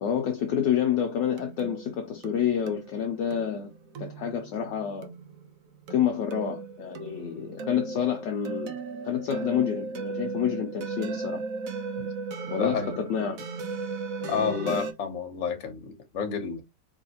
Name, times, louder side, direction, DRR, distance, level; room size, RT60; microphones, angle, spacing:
voice 1, 0.0-3.7 4.0-5.1 5.9-8.8 9.0-11.4 12.5-13.4 14.2-14.8, left 9 dB, 70° left, 1.2 m, -28 dB
sound 1, 0.7-14.9, right 4 dB, 70° right, 0.8 m, -37 dB
voice 2, 12.6-13.0 14.3-16.6, left 6 dB, 45° left, 1.1 m, -30 dB
4.7 x 3.0 x 2.9 m
omnidirectional pair, 2.4 m